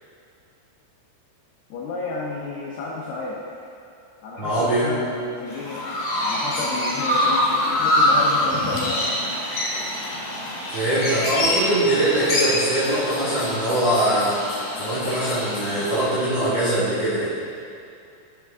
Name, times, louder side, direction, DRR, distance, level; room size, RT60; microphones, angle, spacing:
voice 1, 1.7-3.7 4.2-9.2, left 3 dB, 85° left, -3 dB, 2.4 m, -32 dB
voice 2, 4.4-4.9 10.7-14.4 14.8-17.2, right 1 dB, 75° right, -12 dB, 1.0 m, -22 dB
Chirp tweet, 5.5-16.1, left 1 dB, 55° left, 2.3 m, -25 dB
11.5 x 7.2 x 3.6 m, 2.6 s
omnidirectional pair, 5.9 m